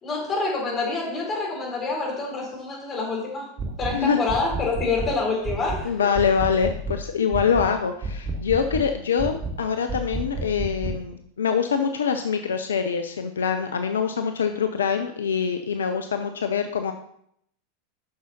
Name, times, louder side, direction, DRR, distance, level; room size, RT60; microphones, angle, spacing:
voice 1, 0.0-3.5 3.8-6.1, left 3 dB, 30° left, -2 dB, 3.8 m, -27 dB
sound 1, 3.6-4.0 4.3-5.2 5.5-5.9 6.2-7.0 7.3-7.7 8.0-8.9 9.2-9.6 9.9-11.0, right 2 dB, 35° right, 1.3 m, -30 dB
voice 2, 5.8-16.9, left 7 dB, 75° left, 7 dB, 0.5 m, -24 dB
9.4 x 6.3 x 4.2 m, 0.71 s
figure-of-eight pair, 85°, 0 cm